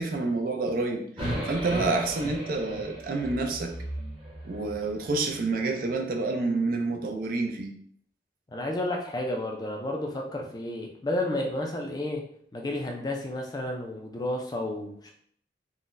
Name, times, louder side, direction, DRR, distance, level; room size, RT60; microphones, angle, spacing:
voice 1, 0.0-3.7 4.4-7.7, right 3 dB, 50° right, 4 dB, 0.4 m, -28 dB
sound 1, 1.2-5.4, right 1 dB, 30° right, 0.9 m, -36 dB
voice 2, 8.5-12.2 12.5-15.1, left 1 dB, 20° left, 1 dB, 0.3 m, -31 dB
3.8 x 2.1 x 2.5 m, 0.63 s
head